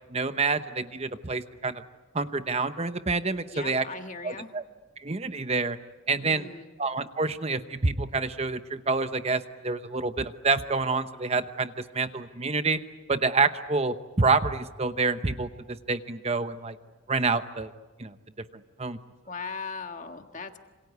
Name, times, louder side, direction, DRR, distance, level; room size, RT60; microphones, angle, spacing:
voice 1, 0.1-1.8 2.1-3.9 4.2-4.6 5.0-5.8 6.1-6.5 6.8-12.8 13.1-16.8 17.1-17.7 18.0-18.1 18.8-19.0, right 4 dB, 30° right, 10 dB, 0.9 m, -27 dB
voice 2, 3.5-4.5 6.2-6.7 19.3-20.6, left 4 dB, 35° left, 6 dB, 1.6 m, -39 dB
27.0 x 26.5 x 8.3 m, 1.2 s
head